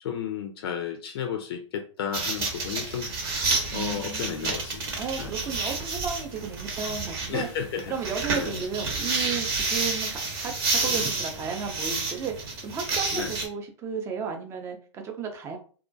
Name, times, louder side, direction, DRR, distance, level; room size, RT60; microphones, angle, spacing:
voice 1, 0.0-3.1 3.7-5.3 7.3-7.9 8.3-8.6 10.8-11.1 13.1-13.3, left 8 dB, 50° left, 6 dB, 0.4 m, -33 dB
sound 1, 2.1-13.4, right 3 dB, 50° right, 0.9 m, -30 dB
voice 2, 3.7-4.6 5.0-7.5 7.9-15.6, right 6 dB, 15° right, 4 dB, 0.4 m, -34 dB
2.3 x 2.1 x 2.6 m, 0.40 s
figure-of-eight pair, 115°, 16 cm